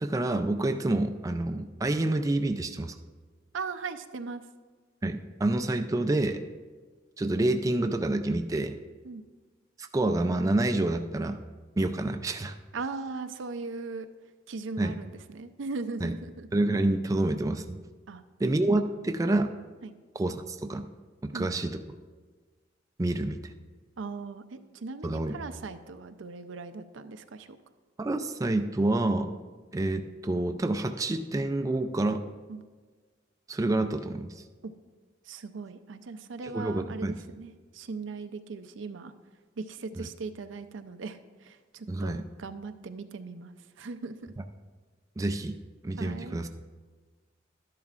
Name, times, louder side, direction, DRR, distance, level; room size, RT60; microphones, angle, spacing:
voice 1, 0.0-3.0 5.0-6.4 7.2-8.8 9.9-11.4 11.8-12.5 14.8-15.0 16.0-16.1 16.5-17.8 18.4-19.5 20.2-20.9 21.2-21.8 23.0-23.4 25.0-25.4 28.0-29.3 29.7-32.2 33.5-34.3 36.4-37.2 40.0-40.1 41.9-42.2 45.2-45.6 45.8-46.5, right 2 dB, 15° right, 6 dB, 0.3 m, -28 dB
voice 2, 3.5-4.4 9.0-9.2 12.7-14.1 14.5-16.5 18.1-18.2 19.8-20.0 21.3-21.5 24.0-27.6 32.5-32.6 34.6-34.7 35.3-39.1 39.6-44.3 46.0-46.4, right 4 dB, 75° right, 9 dB, 0.5 m, -39 dB
12.5 x 10.5 x 2.4 m, 1.4 s
head